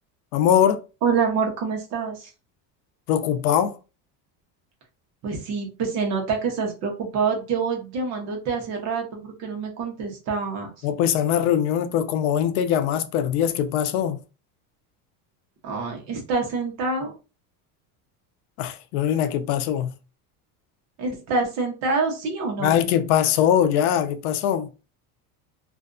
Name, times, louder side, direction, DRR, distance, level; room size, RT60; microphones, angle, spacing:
voice 1, 0.3-0.8 3.1-3.8 10.8-14.2 18.6-19.9 22.6-24.7, left 9 dB, 80° left, 0.5 m, -22 dB
voice 2, 1.0-2.3 5.2-10.8 15.6-17.1 21.0-22.8, right 4 dB, 40° right, 0.8 m, -26 dB
2.5 x 2.3 x 2.4 m
cardioid pair, 175°, 43 cm